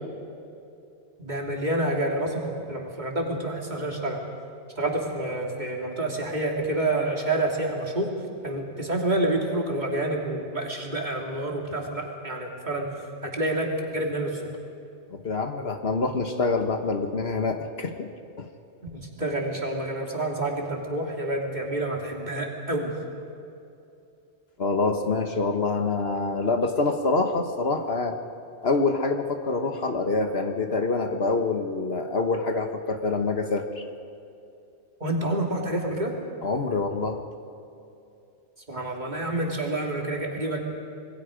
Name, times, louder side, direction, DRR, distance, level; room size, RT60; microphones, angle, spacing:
voice 1, 1.2-4.2 4.8-8.1 8.4-12.9 13.2-14.4 18.9-22.9 35.0-36.2 38.7-40.6, right 1 dB, 40° right, 0 dB, 2.9 m, -28 dB
voice 2, 15.1-18.1 18.4-18.5 24.6-28.2 28.6-33.8 36.4-37.2, left 3 dB, 60° left, 5 dB, 1.5 m, -26 dB
26.5 x 21.5 x 5.1 m, 2.7 s
omnidirectional pair, 1.2 m